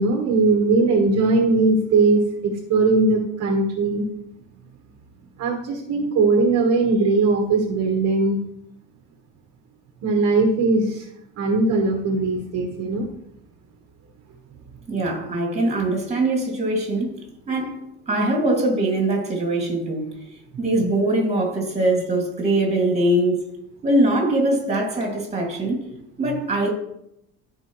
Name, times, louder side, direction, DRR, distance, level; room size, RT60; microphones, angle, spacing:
voice 1, 0.0-4.1 5.4-8.4 10.0-11.0 11.4-13.1, right 3 dB, 50° right, 1.4 m, -20 dB
voice 2, 14.9-17.2 17.5-17.8 18.1-20.2 20.6-23.4 23.8-25.8 26.2-26.7, right 1 dB, 20° right, 2.3 m, -22 dB
13.5 x 4.9 x 3.1 m
cardioid pair, 150°, 32 cm